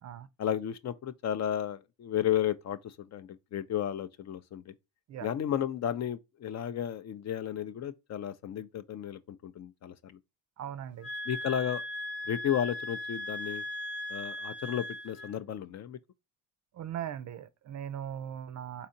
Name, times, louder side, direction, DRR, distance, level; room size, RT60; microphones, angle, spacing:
voice 1, 0.4-4.7 5.2-10.2 11.3-11.8 12.3-13.6 14.1-16.0, left 10 dB, 45° left, 0.5 m, -33 dB
voice 2, 10.6-11.1 16.7-18.9, right 9 dB, 50° right, 0.4 m, -39 dB
sound 1, 11.0-15.3, left 1 dB, 65° left, 1.1 m, -38 dB
4.1 x 2.8 x 2.6 m
supercardioid pair, 65°, 38 cm